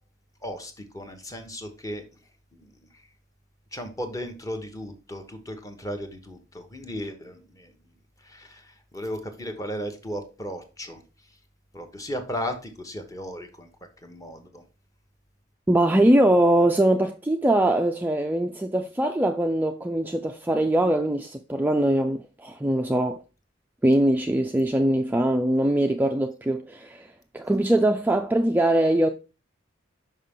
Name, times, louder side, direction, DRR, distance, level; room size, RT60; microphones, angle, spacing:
voice 1, 0.4-2.0 2.6-2.7 3.7-7.7 8.2-11.0 11.7-13.7 14.0-14.6, equal, 15° left, 0.9 m, -35 dB
voice 2, 15.7-23.2 23.8-29.1, right 1 dB, 10° right, 0.3 m, -22 dB
5.5 x 5.5 x 3.5 m
head